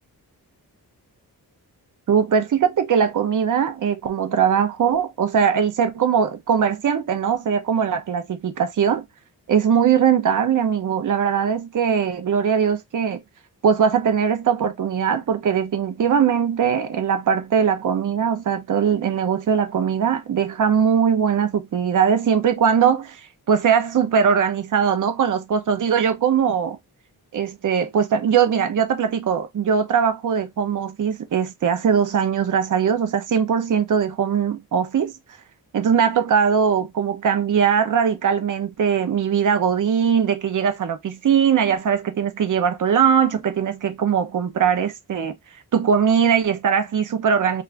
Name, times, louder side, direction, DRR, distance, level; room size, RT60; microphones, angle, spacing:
voice 1, 2.1-9.0 9.5-13.2 13.6-23.2 23.5-26.8 27.3-35.1 35.7-45.3 45.7-47.6, right 7 dB, 55° right, 0.6 m, -20 dB
2.5 x 2.4 x 3.2 m
wide cardioid pair, 180°, 37 cm